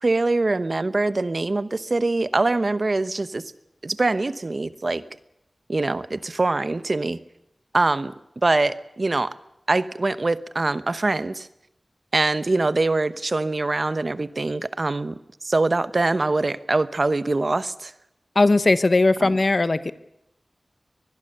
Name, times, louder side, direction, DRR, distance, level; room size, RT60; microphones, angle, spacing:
voice 1, 0.0-3.4 3.8-5.0 5.7-7.2 7.7-8.1 8.4-9.3 9.7-11.5 12.1-17.9 19.2-19.3, right 2 dB, 50° right, 14 dB, 0.9 m, -23 dB
voice 2, 18.3-19.9, left 2 dB, 50° left, 14 dB, 1.0 m, -18 dB
23.5 x 20.5 x 6.8 m, 0.84 s
wide cardioid pair, 80°, 0 cm